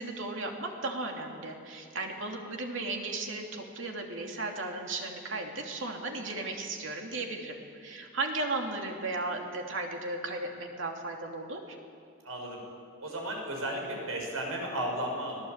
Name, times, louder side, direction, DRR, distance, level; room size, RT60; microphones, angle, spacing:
voice 1, 0.0-11.8, right 2 dB, 60° right, 1 dB, 2.9 m, -35 dB
voice 2, 12.2-12.6 13.0-15.4, right 1 dB, 90° right, 1 dB, 6.6 m, -34 dB
25.5 x 18.0 x 8.2 m, 2.4 s
head